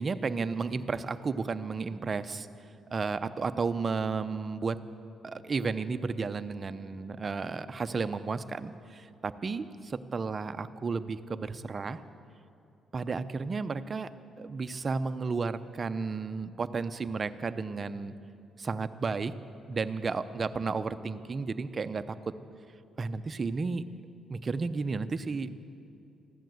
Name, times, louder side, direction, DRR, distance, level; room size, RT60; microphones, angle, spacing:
voice 1, 0.0-2.5 2.9-4.8 5.2-12.0 12.9-14.1 14.4-18.1 18.6-19.3 19.7-22.4 23.0-23.8 24.3-25.5, right 4 dB, 35° right, 11 dB, 0.6 m, -33 dB
15.0 x 11.5 x 7.8 m, 2.6 s
cardioid pair, 90°, 0 cm